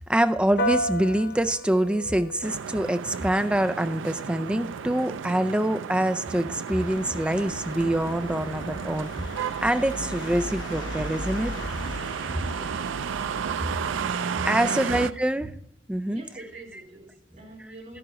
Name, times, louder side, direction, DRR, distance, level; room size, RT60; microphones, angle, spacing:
voice 1, 0.1-9.1 9.6-11.5 14.5-15.5 15.9-16.2, right 1 dB, 5° right, 11 dB, 0.3 m, -25 dB
Piano, 0.6-10.3, equal, 50° left, 0.7 m, -37 dB
sound 1, 2.4-15.1, right 7 dB, 80° right, 0.4 m, -33 dB
sound 2, 6.7-14.9, left 2 dB, 70° left, 1.1 m, -39 dB
voice 2, 14.6-15.0 15.4-15.5 16.1-18.0, right 1 dB, 45° right, -3 dB, 4.3 m, -42 dB
12.5 x 11.0 x 3.0 m, 0.78 s
head